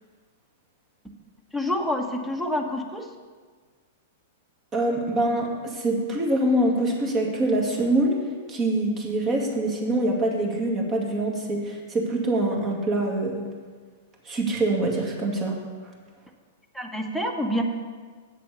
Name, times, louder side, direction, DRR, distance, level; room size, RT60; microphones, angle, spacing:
voice 1, 1.5-3.1 16.7-17.6, left 1 dB, 5° right, 3 dB, 1.3 m, -27 dB
voice 2, 4.7-8.2 8.5-13.4 14.3-15.6, right 1 dB, 30° right, 0 dB, 2.2 m, -24 dB
7.9 x 7.6 x 6.9 m, 1.5 s
hypercardioid pair, 105°, 0 cm